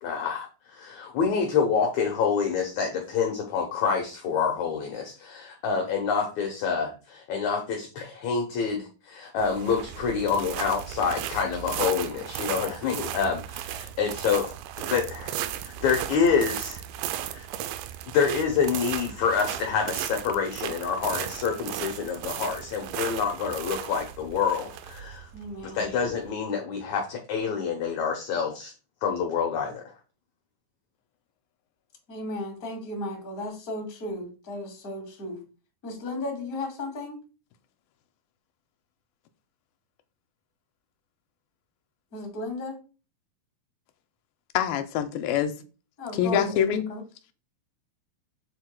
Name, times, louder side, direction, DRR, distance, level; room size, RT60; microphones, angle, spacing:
voice 1, 0.0-15.4 15.6-16.8 17.3-17.5 18.1-25.3 25.7-28.7 29.0-29.8, left 6 dB, 65° left, 2 dB, 1.9 m, -27 dB
sound 1, 9.4-26.3, right 12 dB, 80° right, 2.0 m, -36 dB
voice 2, 25.3-25.8 32.1-35.4 35.8-37.2 42.1-42.8 46.0-46.6 46.9-47.0, left 1 dB, 30° left, 1 dB, 2.1 m, -35 dB
voice 3, 44.5-45.5 46.1-46.8, left 9 dB, 85° left, 8 dB, 2.4 m, -25 dB
7.8 x 7.3 x 2.2 m, 0.34 s
omnidirectional pair, 4.1 m